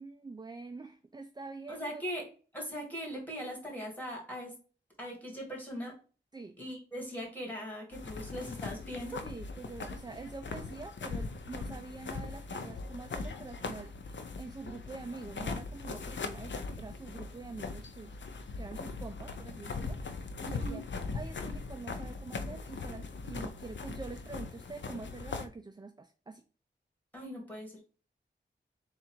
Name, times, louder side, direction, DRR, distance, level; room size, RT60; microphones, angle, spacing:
voice 1, 0.0-2.0 6.3-6.6 9.2-18.2 18.6-20.8 21.1-26.4, right 3 dB, 20° right, 7 dB, 0.4 m, -46 dB
voice 2, 1.7-2.3 2.5-4.5 5.0-6.0 6.6-9.2 20.4-20.9 27.1-27.8, equal, 10° left, -1 dB, 2.1 m, -40 dB
sound 1, 7.9-25.5, left 4 dB, 70° left, 0.6 m, -40 dB
3.8 x 2.5 x 4.3 m, 0.37 s
wide cardioid pair, 60°, 20 cm